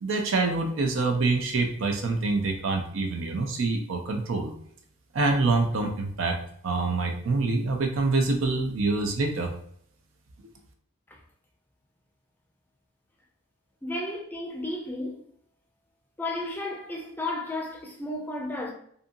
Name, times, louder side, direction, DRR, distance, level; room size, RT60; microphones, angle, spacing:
voice 1, 0.0-4.5 5.1-9.5, right 3 dB, 80° right, 0.4 m, -26 dB
voice 2, 13.8-15.2 16.2-18.7, left 1 dB, 10° left, 0.4 m, -33 dB
2.7 x 2.5 x 2.5 m
head